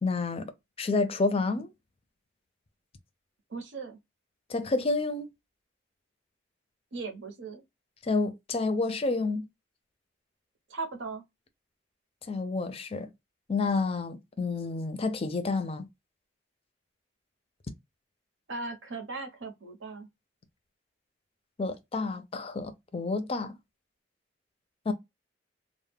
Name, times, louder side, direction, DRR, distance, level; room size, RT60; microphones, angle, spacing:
voice 1, 0.0-0.5 0.8-1.7 4.5-5.3 8.0-9.5 12.3-13.1 13.5-15.9 21.6-23.5 24.9-25.0, left 3 dB, 30° left, 0.4 m, -29 dB
voice 2, 3.5-4.0 6.9-7.6 10.7-11.2 18.5-20.1, right 3 dB, 80° right, 0.8 m, -38 dB
2.2 x 2.0 x 3.4 m
head